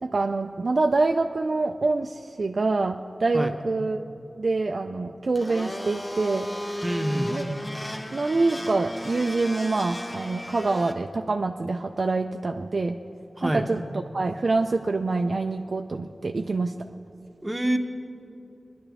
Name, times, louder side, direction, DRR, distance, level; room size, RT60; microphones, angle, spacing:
voice 1, 0.0-4.1 4.4-6.5 7.3-7.6 8.1-13.0 13.4-13.8 14.1-16.9, right 3 dB, 65° right, 5 dB, 0.3 m, -26 dB
Domestic sounds home sounds, 5.3-10.9, left 1 dB, 25° left, 0.9 m, -35 dB
voice 2, 6.8-7.3 13.4-13.7 17.4-17.8, right 1 dB, 20° right, 5 dB, 0.9 m, -26 dB
20.5 x 11.0 x 3.5 m, 2.7 s
wide cardioid pair, 80°, 0 cm